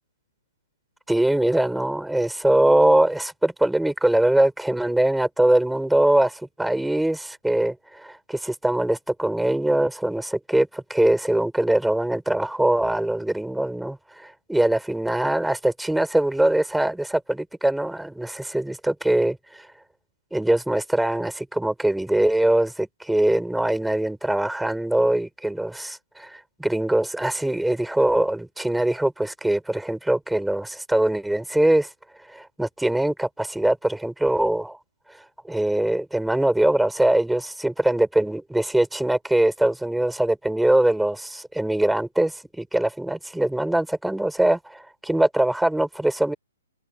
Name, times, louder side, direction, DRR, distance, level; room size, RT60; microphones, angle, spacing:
voice 1, 1.1-19.7 20.3-31.9 32.3-34.8 35.4-46.3, right 1 dB, ahead, 5.6 m, -22 dB
open air
hypercardioid pair, 175°, 0 cm